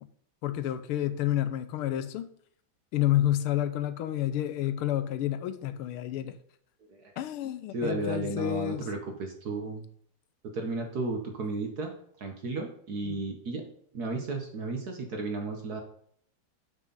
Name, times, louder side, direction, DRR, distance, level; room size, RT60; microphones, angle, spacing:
voice 1, 0.4-2.3 2.9-6.3 7.2-8.8 13.0-13.2, left 12 dB, 90° left, 10 dB, 1.6 m, -29 dB
voice 2, 7.4-9.9 10.5-11.9 12.2-15.8, right 3 dB, 55° right, 4 dB, 1.5 m, -34 dB
7.8 x 6.2 x 5.5 m, 0.64 s
omnidirectional pair, 2.4 m